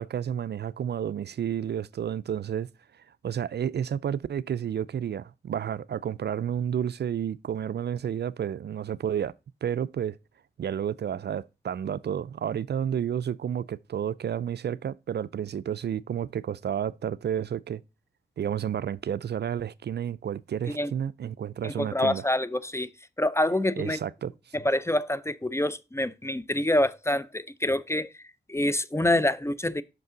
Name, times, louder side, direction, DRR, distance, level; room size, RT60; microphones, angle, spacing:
voice 1, 0.0-2.7 3.2-9.3 9.6-10.2 10.6-17.8 18.4-22.3 23.8-24.5, right 9 dB, 55° right, 0.4 m, -31 dB
voice 2, 21.6-22.9 23.2-24.0 24.5-28.1 28.5-29.8, left 1 dB, 15° left, 0.5 m, -26 dB
6.0 x 5.4 x 3.8 m
cardioid pair, 45°, 20 cm